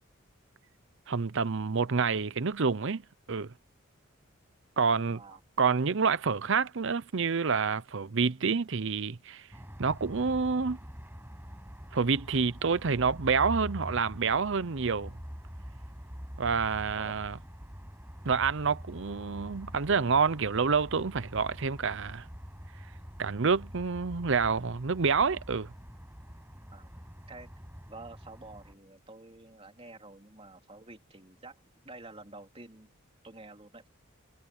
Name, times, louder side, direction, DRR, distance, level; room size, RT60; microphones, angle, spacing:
voice 1, 1.1-3.0 3.3-3.5 4.8-5.2 5.6-9.5 9.8-10.8 11.9-15.1 16.4-17.4 18.2-22.3 23.2-25.7, right 5 dB, 60° right, 0.7 m, -28 dB
sound 1, 9.5-28.7, equal, 10° right, 6.2 m, -45 dB
voice 2, 27.9-32.9 33.2-33.8, right 2 dB, 25° right, 3.2 m, -49 dB
head